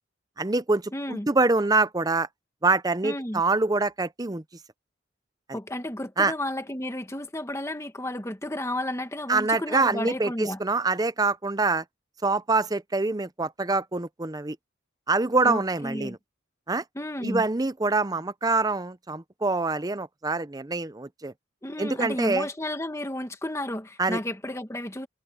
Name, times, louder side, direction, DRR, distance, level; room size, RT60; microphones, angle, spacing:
voice 1, 0.4-2.3 2.6-4.4 5.5-5.6 6.2-6.3 9.3-11.8 12.2-14.6 15.1-16.2 16.7-16.8 17.2-21.3 21.8-22.5 24.0-24.2, right 3 dB, 20° right, 0.7 m, -25 dB
voice 2, 0.9-1.3 3.0-3.4 5.5-10.6 15.4-16.2 16.9-17.4 21.6-25.1, left 1 dB, 15° left, 1.4 m, -32 dB
head